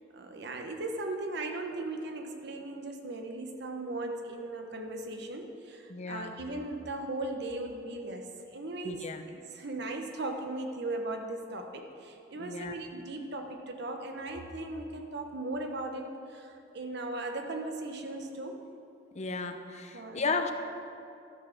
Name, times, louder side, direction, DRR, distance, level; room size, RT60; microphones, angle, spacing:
voice 1, 0.1-9.1 9.5-18.6 19.9-20.2, right 2 dB, 65° right, 4 dB, 1.1 m, -38 dB
voice 2, 5.9-6.3 8.8-9.2 12.4-12.7 19.1-20.5, left 4 dB, 40° left, 7 dB, 0.7 m, -34 dB
12.5 x 7.4 x 6.0 m, 2.6 s
head